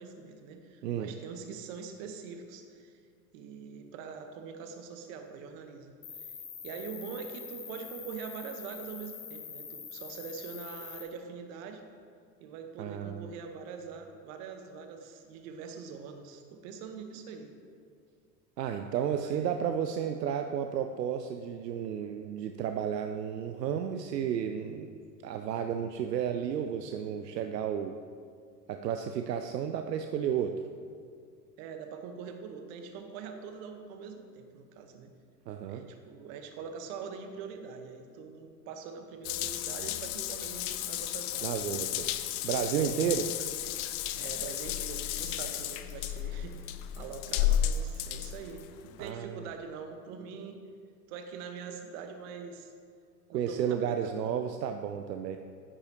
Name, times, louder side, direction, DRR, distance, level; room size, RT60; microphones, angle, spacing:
voice 1, 0.0-2.9 3.3-6.4 6.6-11.8 12.4-17.5 19.2-19.6 31.6-35.1 35.7-42.1 42.7-43.0 43.7-50.6 51.1-52.7 53.3-54.4, right 6 dB, 55° right, 6 dB, 1.2 m, -44 dB
Cricket, 6.0-11.0, left 7 dB, 75° left, 1.7 m, -44 dB
voice 2, 12.8-13.3 18.6-24.9 25.2-28.0 28.7-30.6 35.5-35.8 41.4-43.3 49.0-49.4 53.3-55.4, right 8 dB, 80° right, 6 dB, 0.6 m, -32 dB
Water tap faucet / Bathtub (filling or washing) / Drip, 39.2-49.1, left 11 dB, 50° left, 0.6 m, -33 dB
9.8 x 9.6 x 2.9 m, 2.2 s
figure-of-eight pair, 80°, 48 cm